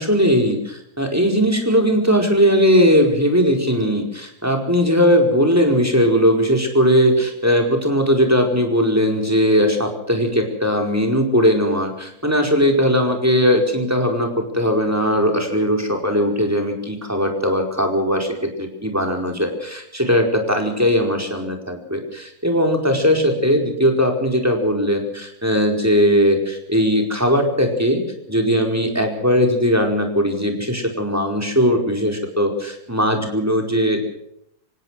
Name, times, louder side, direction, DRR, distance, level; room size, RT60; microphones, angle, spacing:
voice 1, 0.0-18.3 18.6-28.0 28.3-34.0, equal, 10° right, 3 dB, 4.8 m, -19 dB
27.5 x 16.5 x 6.4 m, 0.75 s
omnidirectional pair, 1.6 m